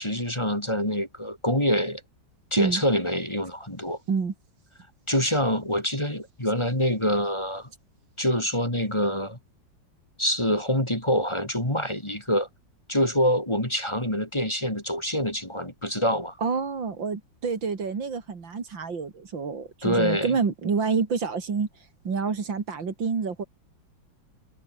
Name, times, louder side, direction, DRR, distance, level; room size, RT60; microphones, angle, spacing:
voice 1, 0.0-2.0 2.5-4.0 5.1-7.7 8.2-9.4 10.2-12.5 12.9-16.4 19.8-20.3, equal, 15° left, 3.6 m, -25 dB
voice 2, 16.4-21.7 22.0-23.4, right 5 dB, 75° right, 3.5 m, -28 dB
omnidirectional pair, 2.1 m